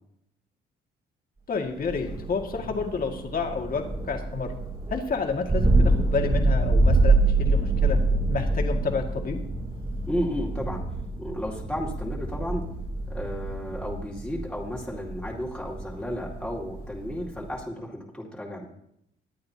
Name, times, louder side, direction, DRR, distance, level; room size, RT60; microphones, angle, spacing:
voice 1, 1.5-4.6 4.9-8.0 8.3-9.4, left 5 dB, 45° left, 3 dB, 2.1 m, -30 dB
Thunder, 1.8-17.6, right 2 dB, 25° right, 3.5 m, -26 dB
voice 2, 10.1-10.8 11.2-12.7 13.1-18.7, equal, 5° left, -4 dB, 2.3 m, -33 dB
22.0 x 8.6 x 2.9 m, 0.76 s
cardioid pair, 90°, 20 cm